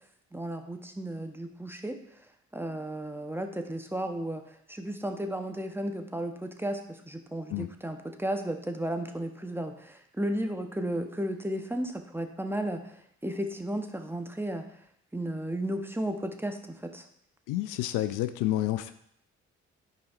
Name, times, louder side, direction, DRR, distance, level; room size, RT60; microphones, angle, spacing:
voice 1, 0.3-2.0 2.5-4.4 4.7-14.7 15.1-17.0, right 1 dB, 5° right, 6 dB, 0.8 m, -34 dB
voice 2, 17.5-18.9, left 14 dB, 65° left, 12 dB, 0.5 m, -29 dB
9.4 x 5.1 x 2.5 m, 0.71 s
hypercardioid pair, 40°, 34 cm